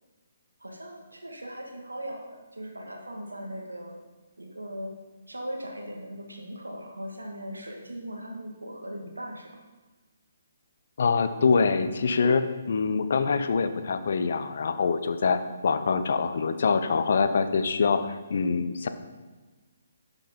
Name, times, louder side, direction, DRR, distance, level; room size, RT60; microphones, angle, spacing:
voice 1, 0.6-2.2 2.5-4.0 4.4-4.9 5.3-9.5, equal, 85° right, 1 dB, 1.9 m, -39 dB
voice 2, 11.0-18.9, left 5 dB, 60° left, 10 dB, 0.8 m, -25 dB
11.5 x 6.3 x 5.3 m, 1.3 s
figure-of-eight pair, 135°, 0 cm